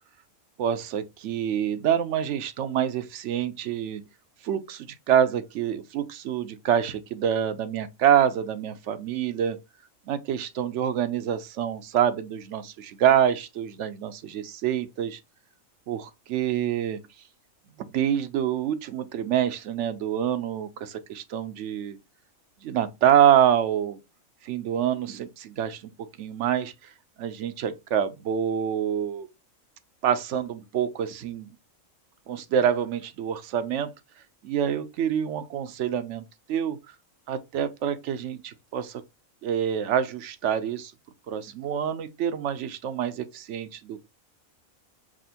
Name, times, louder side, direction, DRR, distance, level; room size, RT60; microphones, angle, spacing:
voice 1, 0.6-4.0 4.4-9.6 10.1-15.2 15.9-17.0 17.9-22.0 22.6-24.0 24.4-25.9 26.2-26.7 27.2-29.3 30.0-31.5 32.3-33.9 34.4-36.8 37.3-39.0 39.4-40.9 41.3-44.0, right 9 dB, 70° right, 0.8 m, -26 dB
6.0 x 2.5 x 2.7 m
omnidirectional pair, 1.4 m